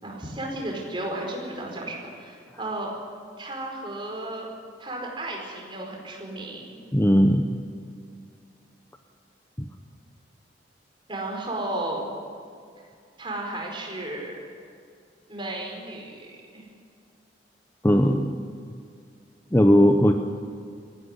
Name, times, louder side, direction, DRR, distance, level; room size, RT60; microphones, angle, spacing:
voice 1, 0.0-2.9 3.4-4.5 4.8-6.8 11.1-12.1 13.2-14.3 15.3-16.3 16.5-16.6, right 1 dB, 25° right, 0 dB, 4.8 m, -33 dB
voice 2, 6.9-7.5 9.6-9.7 17.8-18.3 19.5-20.1, equal, 15° left, 5 dB, 0.8 m, -18 dB
19.5 x 15.5 x 9.8 m, 2.3 s
head